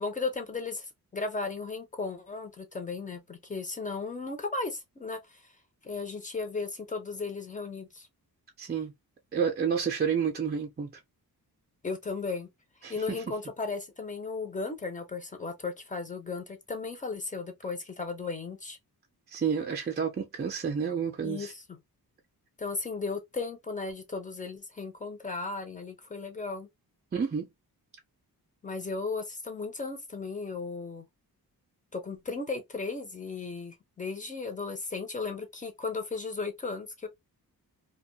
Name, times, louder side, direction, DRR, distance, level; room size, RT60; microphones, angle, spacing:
voice 1, 0.0-5.4 5.8-8.1 11.8-12.5 12.9-18.8 21.2-21.8 22.6-26.7 28.6-31.0 31.9-37.1, left 4 dB, 20° left, 0.6 m, -35 dB
voice 2, 8.6-8.9 9.3-10.9 12.8-13.2 19.3-21.5 27.1-27.5, right 7 dB, 25° right, 0.4 m, -30 dB
2.5 x 2.2 x 2.6 m
wide cardioid pair, 165°, 38 cm